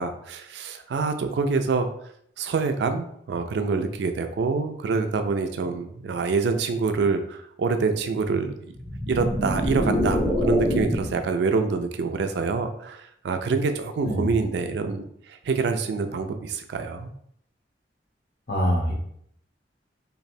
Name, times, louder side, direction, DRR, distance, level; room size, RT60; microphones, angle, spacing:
voice 1, 0.0-1.9 2.4-8.6 9.1-15.0 15.5-17.1, right 4 dB, 65° right, 7 dB, 0.3 m, -26 dB
sound 1, 8.7-11.3, equal, 5° left, 0.4 m, -25 dB
voice 2, 18.5-18.9, equal, 55° left, -1 dB, 0.8 m, -24 dB
3.0 x 2.5 x 2.6 m, 0.70 s
head